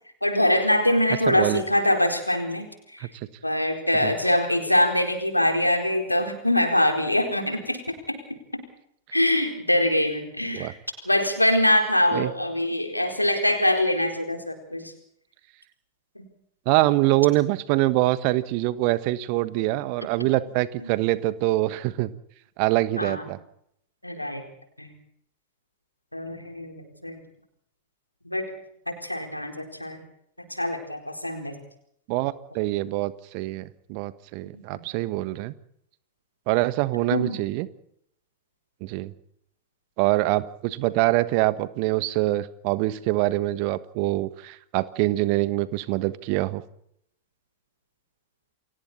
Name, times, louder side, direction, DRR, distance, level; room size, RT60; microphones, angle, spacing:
voice 1, 0.2-2.6 2.9-3.1 3.4-8.6 9.1-10.8 11.0-14.9 16.2-16.3 20.8-20.9 23.0-23.3 24.0-24.4 24.8-24.9 26.1-27.2 28.2-28.5 28.9-30.0 30.5-31.5 34.7-34.8 37.1-37.4, left 1 dB, 85° left, 4 dB, 4.3 m, -24 dB
voice 2, 1.3-1.6 3.0-3.1 4.0-4.1 10.5-10.7 12.1-12.3 16.6-22.1 22.6-23.4 32.1-35.5 36.5-37.7 38.8-39.1 40.0-46.6, right 18 dB, 45° right, 15 dB, 1.3 m, -24 dB
29.5 x 23.5 x 4.3 m, 0.71 s
figure-of-eight pair, 90°, 0 cm